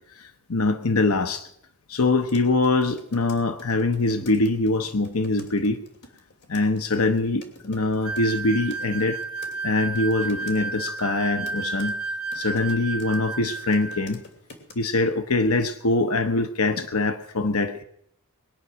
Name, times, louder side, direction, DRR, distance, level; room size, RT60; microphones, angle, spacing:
voice 1, 0.2-1.5 1.9-5.8 6.5-9.2 9.6-11.9 12.3-14.2 14.7-17.8, left 2 dB, 70° left, 8 dB, 1.0 m, -23 dB
sound 1, 2.2-9.6 10.0-10.6 11.0-13.2 13.5-14.7, left 2 dB, 50° left, 3.0 m, -48 dB
sound 2, 8.0-14.1, right 3 dB, 80° right, 1.6 m, -32 dB
22.0 x 9.7 x 6.3 m, 0.74 s
head